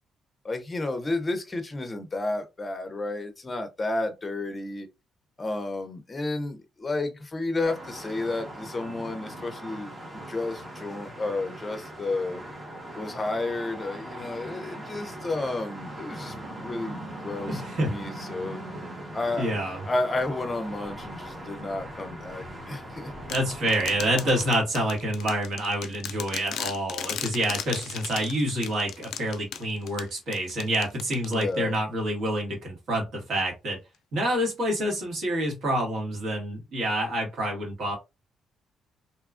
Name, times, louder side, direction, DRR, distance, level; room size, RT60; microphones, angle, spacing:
voice 1, 0.4-4.9 5.4-12.4 12.9-18.6 19.1-19.5 19.8-23.1 31.3-31.8, left 2 dB, 25° left, 0.6 m, -31 dB
sound 1, 7.6-24.5, right 1 dB, 25° right, 0.9 m, -40 dB
voice 2, 17.5-17.9 19.4-19.8 23.3-33.8 34.1-38.0, right 1 dB, 65° right, 1.4 m, -27 dB
sound 2, 23.3-31.8, left 9 dB, 70° left, 0.3 m, -37 dB
2.8 x 2.3 x 2.4 m
cardioid pair, 135°, 0 cm